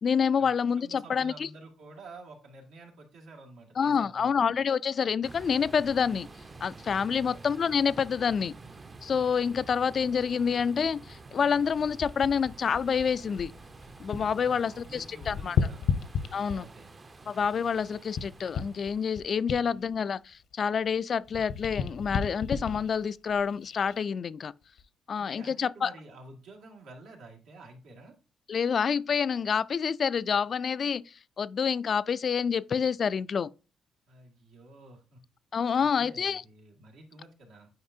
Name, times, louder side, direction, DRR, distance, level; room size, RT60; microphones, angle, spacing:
voice 1, 0.0-1.5 3.8-6.3 6.6-8.5 9.0-13.5 14.0-15.6 16.3-16.7 17.3-24.5 25.1-25.9 28.5-33.5 35.5-36.4, left 6 dB, 50° left, 0.3 m, -28 dB
voice 2, 0.8-4.5 7.1-7.4 14.4-15.9 16.5-16.9 19.5-19.8 25.2-28.2 34.1-35.2 35.8-37.7, right 2 dB, 85° right, 2.0 m, -50 dB
sound 1, 5.2-19.5, right 3 dB, 30° right, 0.6 m, -49 dB
sound 2, 11.7-14.4 14.7-16.9 17.4-21.0 21.2-24.0 24.6-24.8, left 6 dB, 75° left, 0.8 m, -34 dB
9.4 x 4.8 x 2.7 m
cardioid pair, 90°, 0 cm